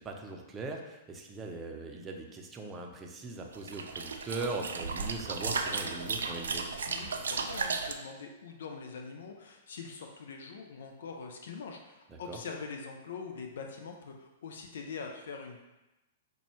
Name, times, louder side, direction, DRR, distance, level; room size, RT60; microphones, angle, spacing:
voice 1, 0.0-6.7 12.1-12.4, right 3 dB, 20° right, 1 dB, 0.6 m, -40 dB
sound 1, 3.5-7.9, right 4 dB, 75° right, 0.3 m, -34 dB
voice 2, 6.9-15.6, left 5 dB, 70° left, 2 dB, 0.4 m, -43 dB
5.2 x 2.2 x 3.0 m, 0.99 s
hypercardioid pair, 110°, 0 cm